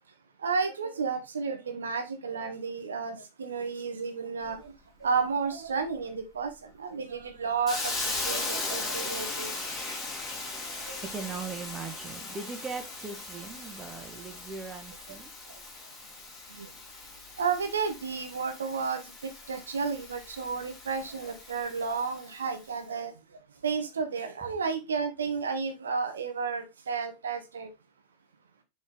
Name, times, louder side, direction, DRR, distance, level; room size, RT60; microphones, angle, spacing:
voice 1, 0.4-4.7 5.0-6.5 6.8-9.5 10.8-11.0 16.5-16.7 17.4-23.1 23.6-27.7, right 5 dB, 70° right, 1.1 m, -32 dB
Hiss, 7.7-22.4, left 3 dB, 15° left, 2.8 m, -38 dB
voice 2, 11.1-15.3, right 5 dB, 20° right, 1.3 m, -39 dB
6.9 x 4.4 x 3.5 m
figure-of-eight pair, 90°, 0 cm